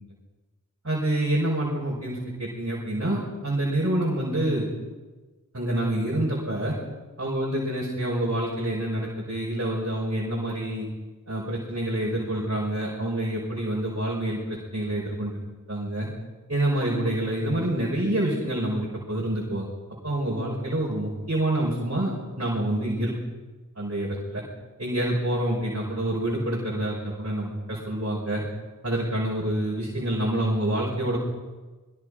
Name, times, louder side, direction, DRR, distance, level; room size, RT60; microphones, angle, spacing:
voice 1, 0.8-4.7 5.5-6.8 7.2-10.9 11.3-15.3 15.7-16.1 16.5-19.7 20.0-23.2 23.8-24.4 24.8-28.4 28.8-31.2, right 1 dB, 45° right, -4 dB, 5.4 m, -27 dB
27.0 x 21.5 x 5.1 m, 1.3 s
wide cardioid pair, 45°, 33 cm